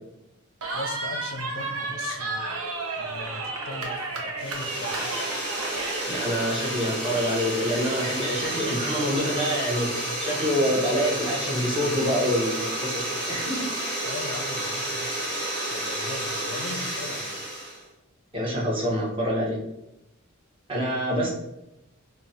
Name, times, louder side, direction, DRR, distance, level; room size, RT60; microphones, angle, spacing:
Cheering, 0.6-6.1, right 3 dB, 85° right, 0.6 m, -32 dB
voice 1, 0.7-2.6 3.0-4.1 4.4-5.1 14.1-15.2 15.7-17.3 21.1-21.3, left 3 dB, 60° left, 5 dB, 0.4 m, -39 dB
sound 1, 4.4-17.8, right 1 dB, 50° right, 1.2 m, -31 dB
voice 2, 6.1-13.7 18.3-19.6 20.7-21.3, equal, 25° right, -3 dB, 0.7 m, -26 dB
3.0 x 2.0 x 2.6 m, 0.87 s
head